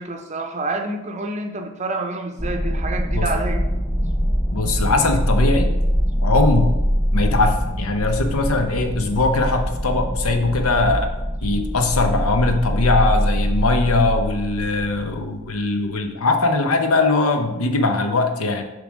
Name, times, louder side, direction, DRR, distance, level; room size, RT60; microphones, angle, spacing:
voice 1, 0.0-3.6, right 2 dB, 30° right, 5 dB, 0.6 m, -28 dB
sound 1, 2.4-15.3, equal, 10° left, 0.7 m, -23 dB
voice 2, 4.5-5.7 6.2-6.7 7.1-11.1 11.4-18.6, left 3 dB, 85° left, 6 dB, 0.9 m, -20 dB
6.8 x 3.4 x 6.2 m, 1.0 s
head